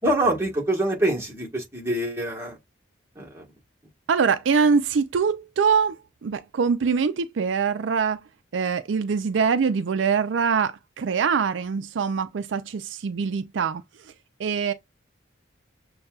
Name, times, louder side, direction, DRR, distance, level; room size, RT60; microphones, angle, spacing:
voice 1, 0.0-2.6 3.2-3.4, right 1 dB, 15° right, 1.2 m, -25 dB
voice 2, 4.1-8.2 8.5-13.8 14.4-14.7, right 6 dB, 75° right, 0.4 m, -23 dB
6.5 x 2.3 x 2.3 m
head